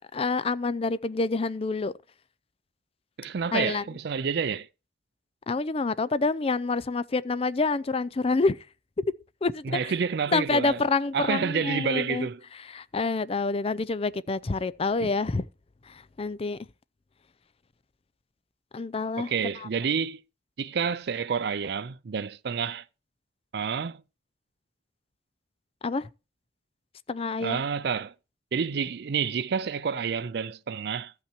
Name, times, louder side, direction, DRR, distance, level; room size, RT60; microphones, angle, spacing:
voice 1, 0.1-1.9 3.5-3.8 5.5-8.6 9.0-9.1 9.4-9.9 10.3-12.3 12.7-15.5 15.9-16.6 18.7-19.3 19.6-19.7 25.8-26.1 27.1-27.6, left 3 dB, 35° left, 0.5 m, -27 dB
voice 2, 3.2-4.7 9.6-10.8 11.1-12.4 15.0-15.1 19.2-20.2 20.6-22.8 23.5-24.0 27.4-28.1 28.5-31.1, right 6 dB, 65° right, 0.4 m, -29 dB
14.5 x 5.8 x 4.4 m
head